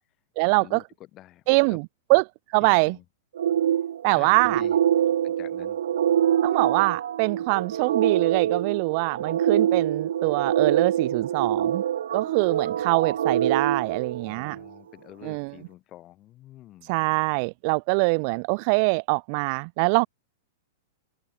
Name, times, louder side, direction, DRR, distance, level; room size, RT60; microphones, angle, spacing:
voice 1, 0.4-0.8 1.5-2.2 2.5-3.0 4.0-4.6 6.4-11.8 12.1-14.6 15.2-15.5 16.8-20.1, right 36 dB, 35° right, 0.6 m, -23 dB
voice 2, 1.1-1.4 1.7-1.8 2.6-3.0 4.0-4.7 5.2-5.8 14.2-16.9, left 15 dB, 25° left, 5.0 m, -47 dB
sound 1, 3.4-14.7, right 10 dB, 85° right, 0.5 m, -25 dB
supercardioid pair, 170°, 0 cm